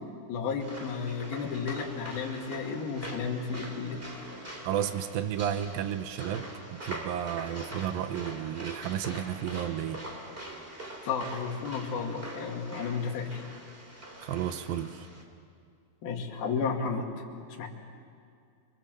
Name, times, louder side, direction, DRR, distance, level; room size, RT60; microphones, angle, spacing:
voice 1, 0.3-4.0 11.0-13.4 16.0-17.1 17.6-17.7, left 5 dB, 55° left, 0 dB, 4.0 m, -32 dB
sound 1, 0.6-15.2, right 1 dB, 15° right, 2.2 m, -43 dB
voice 2, 4.6-6.5 6.8-10.0 14.2-15.1, right 10 dB, 85° right, 9 dB, 2.0 m, -32 dB
28.5 x 23.0 x 7.7 m, 2.3 s
omnidirectional pair, 5.4 m